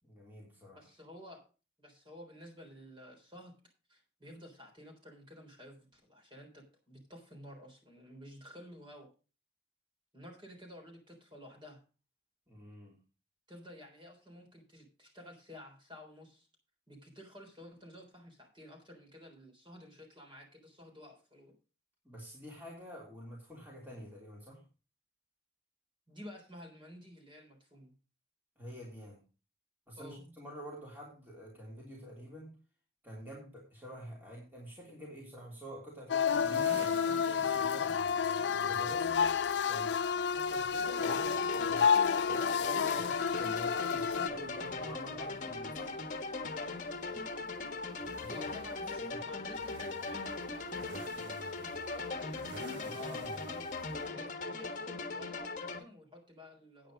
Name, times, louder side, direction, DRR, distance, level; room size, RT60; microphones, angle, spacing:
voice 1, 0.0-0.9 12.5-13.0 22.0-24.6 28.6-29.2 29.9-32.6 33.0-38.0 38.6-39.3 39.6-42.0 42.3-46.0 48.2-48.5 49.1-49.3 52.8-53.5, equal, 10° right, -4 dB, 3.2 m, -48 dB
voice 2, 0.7-1.4 1.8-3.6 3.9-9.1 10.1-11.8 13.5-16.5 16.9-21.5 26.1-27.9 30.0-30.2 38.3-38.4 38.8-39.1 48.3-50.8 51.1-53.9 54.1-56.9, left 1 dB, 25° right, 0 dB, 3.7 m, -53 dB
sound 1, 36.1-44.3, left 6 dB, 80° left, 0.5 m, -30 dB
sound 2, 36.3-54.1, right 1 dB, 85° right, 1.3 m, -52 dB
sound 3, 41.0-55.8, left 3 dB, 45° left, 1.3 m, -39 dB
9.2 x 8.9 x 5.1 m, 0.35 s
head